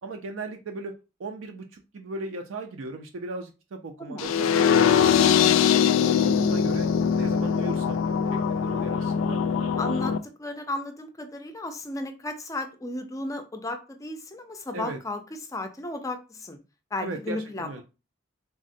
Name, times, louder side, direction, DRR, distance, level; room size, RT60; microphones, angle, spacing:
voice 1, 0.0-4.7 5.0-6.9 7.1-8.0 8.3-9.4 14.7-15.0 17.0-17.8, right 2 dB, 75° right, 4 dB, 0.4 m, -37 dB
voice 2, 4.0-4.5 9.8-16.6 16.9-17.8, left 2 dB, 15° left, 6 dB, 0.4 m, -34 dB
sound 1, 4.2-10.2, left 7 dB, 90° left, 0.3 m, -22 dB
3.5 x 2.1 x 2.5 m, 0.29 s
head